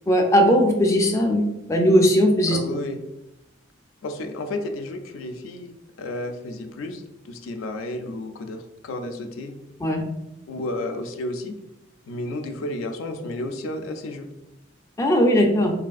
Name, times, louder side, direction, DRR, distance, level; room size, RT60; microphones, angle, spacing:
voice 1, 0.1-2.6 9.8-10.0 15.0-15.7, equal, 15° left, 1 dB, 0.3 m, -18 dB
voice 2, 2.5-3.0 4.0-5.7 6.0-9.6 10.5-11.6 12.1-14.3, left 2 dB, 85° left, 6 dB, 0.4 m, -32 dB
3.3 x 2.5 x 2.3 m, 0.90 s
head